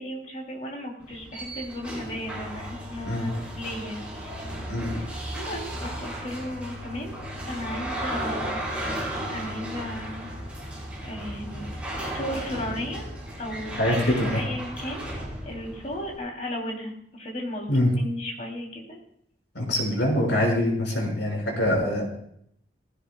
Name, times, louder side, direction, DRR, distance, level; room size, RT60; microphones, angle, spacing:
voice 1, 0.0-4.4 5.3-7.2 7.5-8.6 9.3-10.3 11.0-11.7 12.1-19.0, left 1 dB, 40° left, 0 dB, 3.3 m, -35 dB
sound 1, 1.0-16.2, right 1 dB, 5° right, 4.6 m, -35 dB
voice 2, 13.8-14.5 17.7-17.9 19.5-22.0, left 1 dB, 75° left, -2 dB, 5.9 m, -24 dB
19.0 x 15.5 x 2.4 m, 0.70 s
head